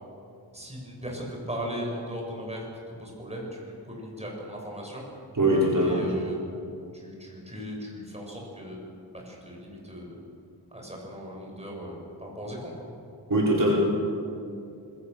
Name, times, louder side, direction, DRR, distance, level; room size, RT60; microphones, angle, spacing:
voice 1, 0.5-2.6 3.0-5.0 5.8-6.4 6.9-8.8 9.1-10.2 10.7-12.7, equal, 15° right, -1 dB, 6.8 m, -37 dB
voice 2, 5.4-6.0 13.3-13.7, right 1 dB, 50° right, -4 dB, 4.9 m, -22 dB
27.0 x 21.0 x 7.0 m, 2.6 s
wide cardioid pair, 100°, 41 cm